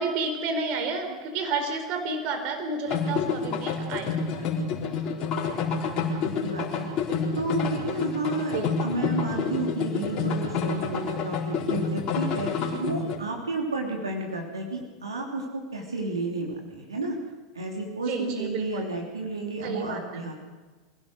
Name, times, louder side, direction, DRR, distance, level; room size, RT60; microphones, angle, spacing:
voice 1, 0.0-4.1 8.5-8.7 18.0-18.9 19.6-20.2, right 3 dB, 45° right, 5 dB, 4.3 m, -31 dB
sound 1, 2.9-13.2, left 5 dB, 40° left, 4.4 m, -28 dB
voice 2, 4.3-7.0 7.4-17.2 17.5-20.3, right 2 dB, 75° right, 0 dB, 3.1 m, -32 dB
25.5 x 16.5 x 6.5 m, 1.4 s
figure-of-eight pair, 85°, 2 cm